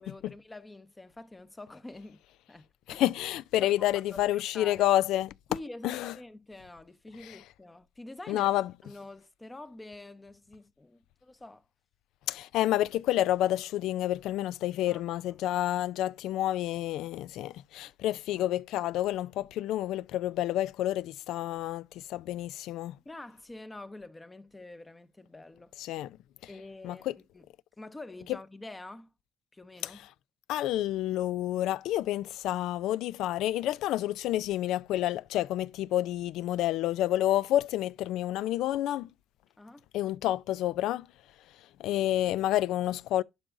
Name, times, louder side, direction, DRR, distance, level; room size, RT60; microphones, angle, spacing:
voice 1, 0.0-2.2 2.5-3.0 3.6-4.9 5.5-8.5 8.8-11.6 14.9-15.4 18.1-18.5 23.0-25.7 26.5-27.1 27.3-27.5 27.8-29.1 29.5-30.1 39.6-39.8, left 2 dB, 20° left, 0.8 m, -47 dB
voice 2, 2.9-5.3 5.8-6.1 8.3-8.7 12.3-22.9 25.8-26.1 26.8-27.1 30.5-39.1 39.9-41.0 41.8-43.2, left 13 dB, 90° left, 0.3 m, -29 dB
11.5 x 4.9 x 2.5 m
cardioid pair, 90°, 0 cm